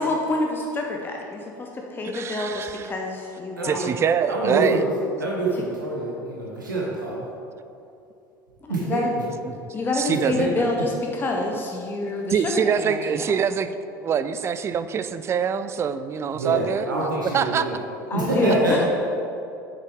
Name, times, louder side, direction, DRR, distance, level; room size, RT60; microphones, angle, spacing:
voice 1, 0.0-3.9 8.6-9.1 9.7-13.3 18.1-18.8, left 2 dB, 20° left, 1 dB, 0.7 m, -27 dB
voice 2, 2.0-2.9 3.6-4.8 9.4-9.6 9.9-10.5 12.3-13.7 14.0-17.1 17.3-17.7, right 7 dB, 25° right, 11 dB, 0.4 m, -24 dB
voice 3, 3.6-3.9 4.3-4.9 5.2-7.2 8.7-9.0 10.3-10.5 16.3-17.8 18.1-18.8, right 2 dB, 80° right, -4 dB, 1.1 m, -26 dB
8.1 x 6.7 x 3.5 m, 2.6 s
figure-of-eight pair, 70°, 10 cm